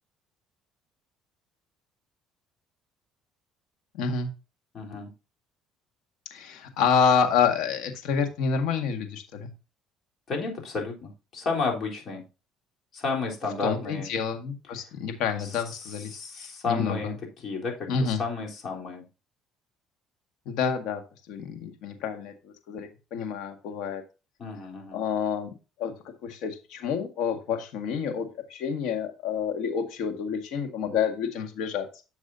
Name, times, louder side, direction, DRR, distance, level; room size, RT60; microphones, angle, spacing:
voice 1, 3.9-4.3 6.3-9.5 13.6-17.1 17.9-18.2 20.5-21.0 21.3-24.0 24.9-25.5 25.8-25.9 26.2-31.9, left 6 dB, 75° left, 5 dB, 1.8 m, -28 dB
voice 2, 4.7-5.1 10.3-12.2 12.9-14.1 14.8-14.9 15.4-19.0 24.4-25.0, left 4 dB, 45° left, 0 dB, 3.8 m, -32 dB
11.0 x 7.1 x 2.7 m, 0.30 s
cardioid pair, 105°, 0 cm